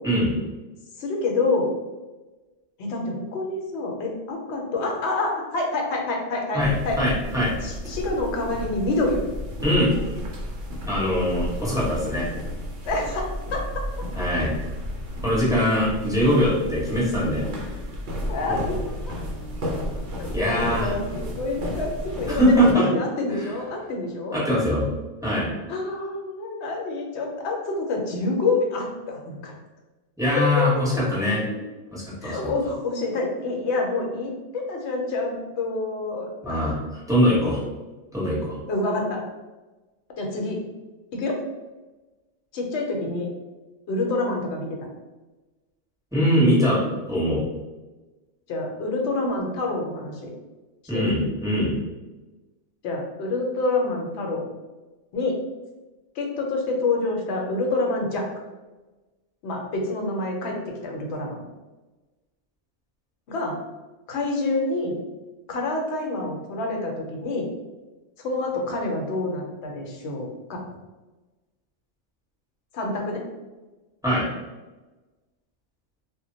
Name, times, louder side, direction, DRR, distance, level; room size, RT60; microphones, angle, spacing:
voice 1, 1.0-1.7 2.8-6.6 6.8-7.0 7.6-9.2 12.9-13.6 18.3-18.8 19.1-19.2 20.2-24.4 25.7-29.5 30.4-30.8 31.5-31.6 32.2-36.8 38.7-39.2 40.2-40.6 41.1-41.4 42.5-43.3 43.9-44.7 48.5-50.3 50.9-51.1 52.8-54.5 55.1-55.4 56.2-58.2 59.4-61.4 63.3-63.6 64.1-64.9 65.5-67.5 68.2-70.6 72.7-73.2, left 2 dB, 65° left, 0 dB, 0.9 m, -27 dB
voice 2, 6.5-7.5 9.6-9.9 10.9-12.3 14.2-14.5 15.2-17.5 18.5-18.6 20.3-20.9 22.3-22.8 23.4-23.5 24.3-24.8 25.2-25.5 30.2-31.4 31.9-32.5 36.4-36.7 37.1-37.6 38.1-38.5 46.1-46.8 47.1-47.4 50.9-51.8 74.0-74.2, equal, 5° right, -8 dB, 0.9 m, -22 dB
sound 1, 6.6-22.7, equal, 70° right, 0.9 m, -32 dB
2.2 x 2.1 x 3.8 m, 1.2 s
omnidirectional pair, 1.3 m